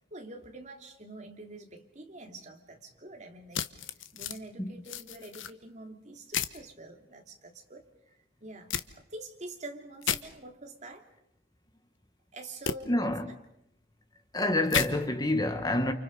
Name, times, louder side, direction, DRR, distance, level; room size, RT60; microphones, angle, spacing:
voice 1, 0.1-7.8 8.4-11.1 12.3-13.1, right 2 dB, 35° right, 2.9 m, -46 dB
sound 1, 3.5-4.4 4.8-5.5 6.3-6.6 8.7-8.9 10.0-10.2 12.6-12.8 14.7-14.9, left 8 dB, 70° left, 1.1 m, -31 dB
voice 2, 12.9-13.3 14.3-15.9, left 1 dB, 20° left, 1.2 m, -27 dB
29.5 x 28.5 x 5.4 m
head